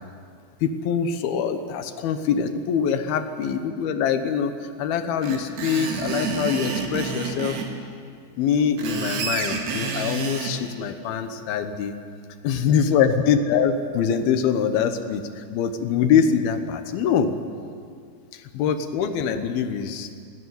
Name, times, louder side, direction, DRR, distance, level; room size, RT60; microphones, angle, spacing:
voice 1, 0.6-7.6 8.4-12.0 12.4-17.3 18.3-20.1, left 7 dB, 70° left, 8 dB, 2.6 m, -24 dB
Screech, 5.2-7.7 8.6-10.5, right 5 dB, 65° right, 3.6 m, -29 dB
20.0 x 15.5 x 9.5 m, 2.2 s
omnidirectional pair, 5.1 m